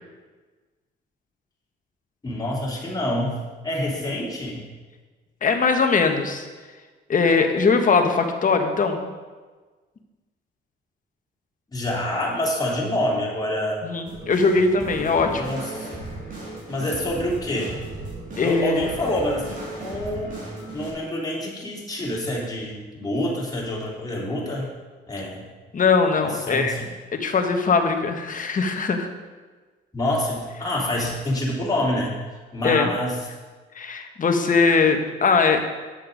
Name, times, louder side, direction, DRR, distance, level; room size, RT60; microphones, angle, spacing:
voice 1, 2.2-4.6 11.7-13.8 15.3-15.9 16.7-17.8 18.4-20.3 20.7-24.7 25.1-25.4 26.3-26.9 29.9-33.2, left 1 dB, 20° left, -4 dB, 3.1 m, -27 dB
voice 2, 5.4-6.4 7.1-9.1 13.8-15.4 18.4-18.8 25.7-26.7 27.1-29.1 32.6-32.9 33.7-35.6, left 4 dB, 40° left, 5 dB, 1.3 m, -20 dB
sound 1, 14.1-20.9, right 2 dB, 40° right, 3.4 m, -36 dB
9.4 x 6.6 x 5.2 m, 1.3 s
cardioid pair, 90°, 20 cm